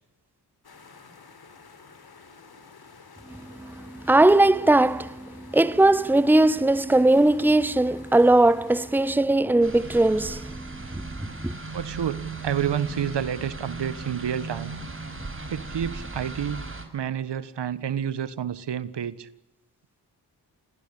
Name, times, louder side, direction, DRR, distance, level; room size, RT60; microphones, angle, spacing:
sound 1, 0.6-9.1, left 4 dB, 55° left, 4.6 m, -50 dB
voice 1, 3.3-11.1 11.4-11.5, right 2 dB, 5° right, 1.1 m, -20 dB
sound 2, 9.6-16.9, right 3 dB, 30° right, 5.8 m, -37 dB
voice 2, 11.7-14.7 15.5-16.6 16.9-19.3, right 9 dB, 65° right, 1.5 m, -29 dB
27.5 x 20.0 x 8.4 m
supercardioid pair, 40°, 44 cm